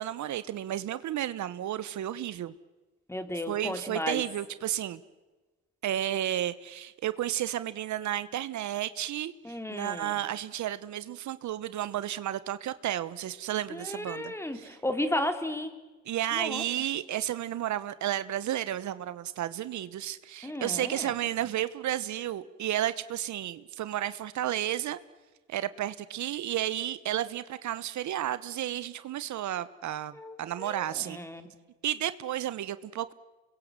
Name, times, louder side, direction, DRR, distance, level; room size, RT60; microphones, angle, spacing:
voice 1, 0.0-2.5 3.5-5.0 5.8-14.8 16.1-25.0 25.5-31.2 31.8-33.1, right 12 dB, 70° right, 1.1 m, -32 dB
voice 2, 3.1-4.2 9.4-10.2 13.7-15.7 16.3-16.6 20.4-21.1 30.1-31.5, left 1 dB, 10° left, 3.1 m, -34 dB
27.5 x 22.0 x 7.5 m
cardioid pair, 90°, 30 cm